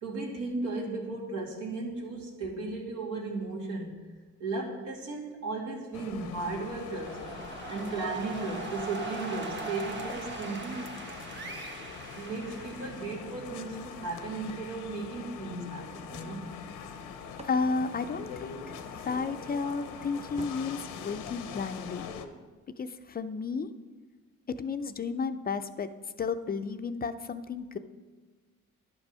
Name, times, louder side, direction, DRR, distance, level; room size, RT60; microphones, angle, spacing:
voice 1, 0.0-4.0 4.4-7.2 7.7-10.9 12.2-16.4 19.5-19.6, right 3 dB, 80° right, -1 dB, 2.3 m, -35 dB
sound 1, 5.9-22.3, left 6 dB, 85° left, 0.8 m, -43 dB
sound 2, 6.6-13.4, right 3 dB, 35° right, 1.3 m, -41 dB
sound 3, 14.5-16.0 16.9-18.9 20.4-22.0, right 2 dB, 20° right, 0.8 m, -53 dB
voice 2, 17.4-22.1 22.8-23.7 24.5-25.9 26.2-27.8, left 4 dB, 30° left, 10 dB, 0.5 m, -33 dB
10.5 x 6.0 x 5.5 m, 1.3 s
cardioid pair, 90°, 30 cm